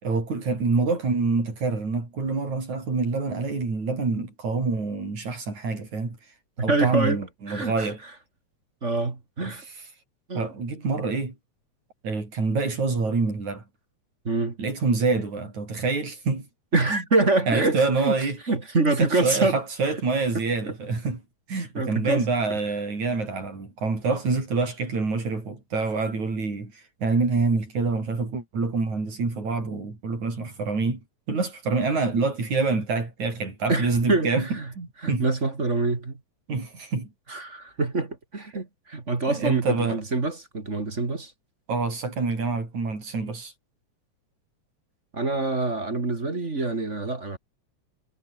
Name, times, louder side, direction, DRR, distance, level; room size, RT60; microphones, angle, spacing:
voice 1, 0.0-6.2 6.6-8.0 9.4-9.6 10.3-11.3 12.0-13.6 14.6-16.5 16.9-17.0 17.5-18.4 19.0-21.2 21.5-31.0 31.3-35.3 36.5-37.1 38.5-38.6 39.3-40.0 41.7-43.5, right 4 dB, 75° right, 8.2 m, -26 dB
voice 2, 6.6-7.2 7.5-7.9 8.8-9.6 10.3-10.5 14.2-14.6 16.7-18.1 18.5-19.6 21.7-22.3 33.7-34.7 35.0-36.2 37.3-41.3 45.1-47.4, right 3 dB, 25° right, 2.5 m, -25 dB
omnidirectional pair, 3.3 m